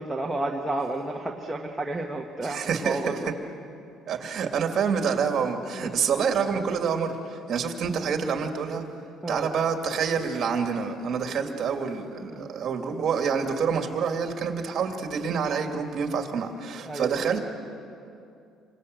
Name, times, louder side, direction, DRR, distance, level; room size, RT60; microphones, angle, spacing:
voice 1, 0.0-3.3 4.1-4.3 5.7-6.1 9.2-9.5 12.3-12.5 16.8-17.3, right 2 dB, 10° right, 0 dB, 1.3 m, -32 dB
voice 2, 2.4-3.1 4.1-8.8 9.3-17.4, right 6 dB, 45° right, 4 dB, 2.7 m, -27 dB
28.5 x 24.5 x 8.1 m, 2.5 s
cardioid pair, 155°, 0 cm